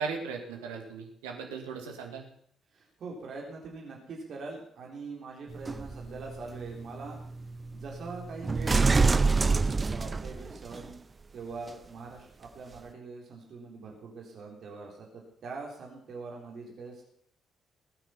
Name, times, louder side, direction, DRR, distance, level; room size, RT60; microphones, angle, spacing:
voice 1, 0.0-2.3, right 5 dB, 70° right, 2 dB, 2.3 m, -37 dB
voice 2, 2.7-7.2 7.7-11.1 11.3-17.0, right 4 dB, 50° right, -1 dB, 3.6 m, -43 dB
sound 1, 5.5-10.9 11.7-11.8, right 4 dB, 30° right, 0.8 m, -28 dB
20.0 x 9.0 x 5.7 m, 0.64 s
figure-of-eight pair, 45°, 0 cm